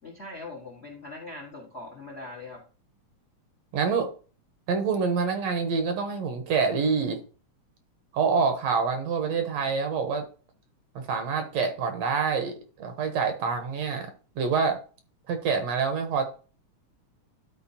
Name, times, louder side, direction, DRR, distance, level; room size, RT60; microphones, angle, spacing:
voice 1, 0.0-2.6, left 2 dB, 40° left, 0.9 m, -41 dB
voice 2, 3.7-4.1 4.7-7.2 8.1-10.2 11.0-14.1 14.4-14.8 15.3-16.2, right 5 dB, 65° right, 2.0 m, -26 dB
12.0 x 4.5 x 2.8 m
omnidirectional pair, 3.4 m